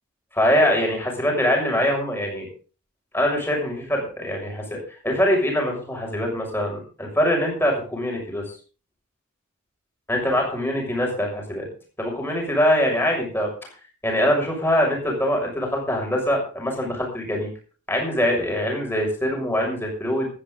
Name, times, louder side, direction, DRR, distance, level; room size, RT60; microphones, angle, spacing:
voice 1, 0.3-2.5 3.1-4.8 5.0-8.5 10.1-11.7 12.0-13.5 14.0-17.5 17.9-20.3, equal, 10° left, 0 dB, 6.5 m, -23 dB
16.5 x 13.5 x 4.0 m, 0.37 s
head